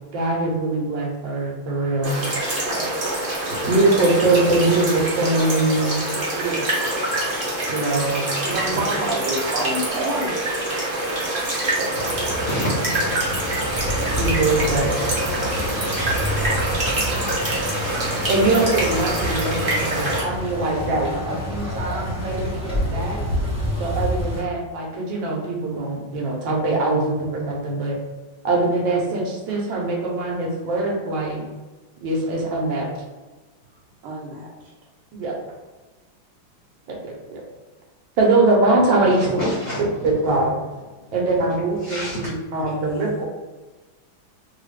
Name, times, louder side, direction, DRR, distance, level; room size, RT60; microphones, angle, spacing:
voice 1, 0.1-2.2 3.6-6.0 7.7-8.3 11.8-11.9 14.2-15.0 18.3-23.2 23.8-28.0 28.4-31.4 32.0-32.9 35.1-35.4 36.9-37.4 38.2-39.4 39.8-40.5 41.1-43.2, right 2 dB, 70° right, -1 dB, 1.4 m, -22 dB
sound 1, 2.0-20.2, right 1 dB, 45° right, 0.6 m, -25 dB
voice 2, 2.0-3.1 6.3-6.9 8.3-10.5 34.0-34.7, right 2 dB, 90° right, -4 dB, 1.5 m, -29 dB
sound 2, 11.9-24.4, equal, 5° right, 0.8 m, -28 dB
voice 3, 12.4-13.1 31.4-31.5 39.1-40.0 41.8-42.3, left 1 dB, 75° left, -5 dB, 0.7 m, -28 dB
3.4 x 2.4 x 3.2 m, 1.2 s
omnidirectional pair, 2.3 m